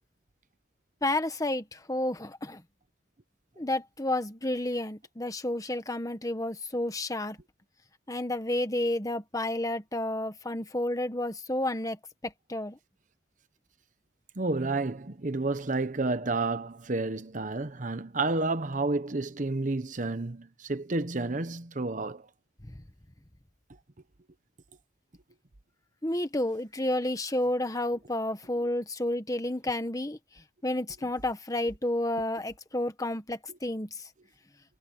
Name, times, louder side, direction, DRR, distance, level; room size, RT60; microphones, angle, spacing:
voice 1, 1.0-2.6 3.6-7.4 8.1-12.8 22.7-22.8 26.0-30.2 30.6-33.9, left 1 dB, 20° left, 1.5 m, -31 dB
voice 2, 14.4-22.3 33.5-33.6, right 3 dB, 45° right, 1.0 m, -30 dB
head